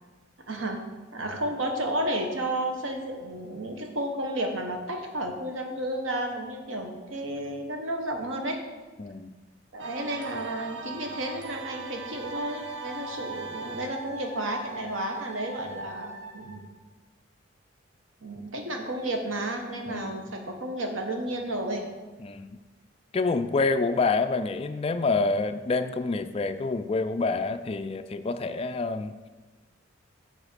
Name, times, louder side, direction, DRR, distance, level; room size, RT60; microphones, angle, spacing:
voice 1, 0.5-0.8 1.1-8.6 9.7-16.7 18.2-21.9, right 1 dB, 85° right, 4 dB, 1.1 m, -32 dB
voice 2, 9.0-9.3 19.9-20.3 22.2-22.6 23.1-29.2, left 3 dB, 30° left, 10 dB, 0.3 m, -27 dB
sound 1, 9.8-14.1, right 4 dB, 65° right, 0.6 m, -40 dB
Wind instrument woodwind instrument, 12.2-16.7, right 1 dB, 10° right, 1.2 m, -41 dB
7.4 x 4.1 x 6.6 m, 1.3 s
head